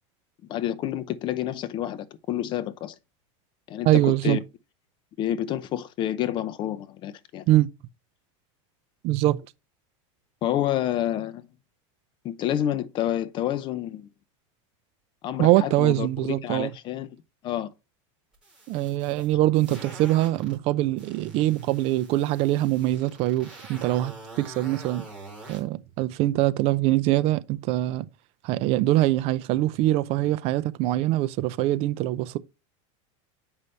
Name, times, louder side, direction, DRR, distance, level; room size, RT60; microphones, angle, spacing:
voice 1, 0.5-2.9 3.7-4.4 5.2-7.4 10.4-11.5 12.2-14.1 15.2-17.2 17.4-17.7, left 11 dB, 30° left, 0.6 m, -29 dB
voice 2, 3.8-4.4 7.5-7.7 9.0-9.4 15.4-16.7 18.7-25.0 25.5-28.1 28.4-32.4, right 16 dB, 40° right, 0.5 m, -23 dB
sound 1, 18.3-20.6 21.0-25.6, right 2 dB, 5° right, 4.0 m, -45 dB
7.9 x 5.5 x 3.2 m
supercardioid pair, 155°, 16 cm